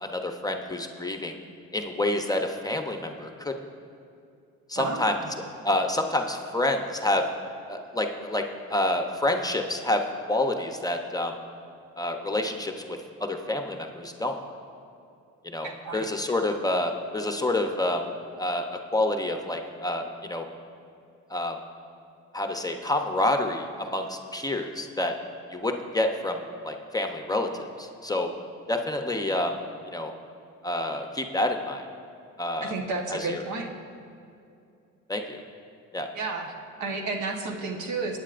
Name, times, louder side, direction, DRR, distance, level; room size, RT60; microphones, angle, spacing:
voice 1, 0.0-1.4 1.7-3.5 4.7-5.2 5.6-7.3 7.7-10.0 10.3-11.3 12.0-14.4 15.4-18.0 18.4-20.5 21.3-21.6 22.3-25.1 25.5-26.4 26.6-27.5 27.8-28.3 28.7-29.6 29.9-30.1 30.6-31.9 32.4-32.7 33.1-33.4 35.1-35.4 35.9-36.1, left 1 dB, 10° left, 4 dB, 0.7 m, -28 dB
voice 2, 4.7-5.3 15.6-16.1 32.6-33.7 36.1-38.2, right 3 dB, 70° right, 3 dB, 1.2 m, -32 dB
19.0 x 9.1 x 2.5 m, 2.5 s
cardioid pair, 90°, 30 cm